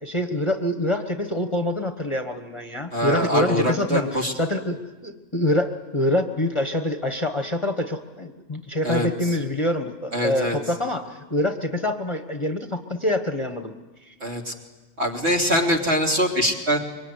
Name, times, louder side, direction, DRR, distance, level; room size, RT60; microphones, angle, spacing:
voice 1, 0.0-13.7 14.0-14.1, left 1 dB, 25° left, 6 dB, 1.3 m, -25 dB
voice 2, 2.9-4.3 8.8-9.1 10.1-10.6 14.2-14.5 15.0-16.8, equal, 50° right, 0 dB, 3.7 m, -23 dB
25.5 x 24.0 x 9.8 m, 1.2 s
omnidirectional pair, 1.4 m